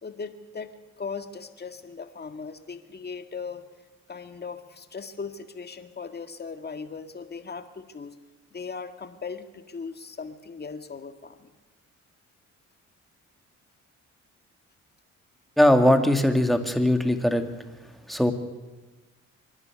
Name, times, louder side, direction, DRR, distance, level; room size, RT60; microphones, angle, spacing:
voice 1, 0.0-3.6 4.1-8.2 8.5-11.5, left 5 dB, 35° left, 7 dB, 2.0 m, -38 dB
voice 2, 15.6-17.4 18.1-18.3, left 1 dB, ahead, 6 dB, 2.2 m, -20 dB
25.0 x 11.0 x 9.8 m, 1.2 s
cardioid pair, 90°, 30 cm